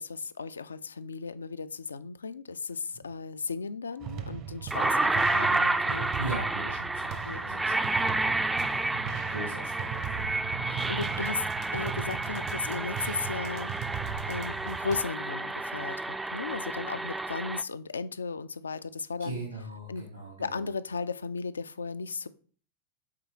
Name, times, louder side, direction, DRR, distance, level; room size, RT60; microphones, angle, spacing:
voice 1, 0.0-6.3 7.2-7.4 10.7-11.4 11.7-13.7 14.3-19.4 19.9-20.0 20.4-22.3, left 4 dB, 75° left, 15 dB, 0.4 m, -35 dB
sound 1, 4.0-15.0, right 8 dB, 40° right, 0.6 m, -38 dB
sound 2, 4.1-4.2 4.7-17.6, right 2 dB, 10° right, 0.3 m, -30 dB
voice 2, 6.2-8.3 8.6-10.3 19.2-20.8, right 1 dB, 80° right, -2 dB, 1.7 m, -40 dB
8.3 x 3.6 x 3.5 m, 0.43 s
figure-of-eight pair, 90°, 0 cm